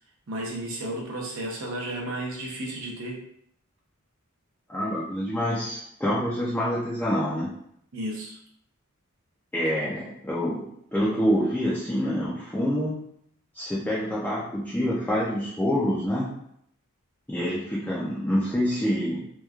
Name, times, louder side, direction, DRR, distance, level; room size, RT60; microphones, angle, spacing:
voice 1, 0.3-3.2 7.9-8.4, right 1 dB, 60° right, -1 dB, 0.6 m, -33 dB
voice 2, 4.7-7.5 9.5-10.6 10.9-13.0 13.5-16.3 17.3-19.2, equal, 10° left, -8 dB, 0.4 m, -26 dB
3.0 x 2.3 x 2.3 m, 0.70 s
head